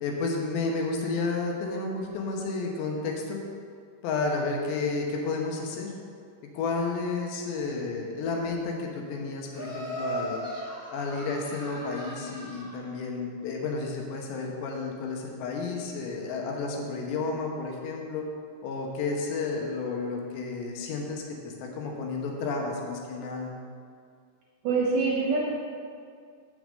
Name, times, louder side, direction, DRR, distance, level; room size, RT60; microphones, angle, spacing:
voice 1, 0.0-3.4 4.0-5.9 6.5-10.4 10.9-18.3 18.6-23.5, left 3 dB, 80° left, 1 dB, 3.3 m, -31 dB
Laughter, 9.5-12.7, right 1 dB, 20° left, 2.6 m, -37 dB
voice 2, 24.6-25.4, right 4 dB, 70° right, -3 dB, 2.2 m, -24 dB
7.0 x 6.7 x 7.5 m, 2.2 s
omnidirectional pair, 4.9 m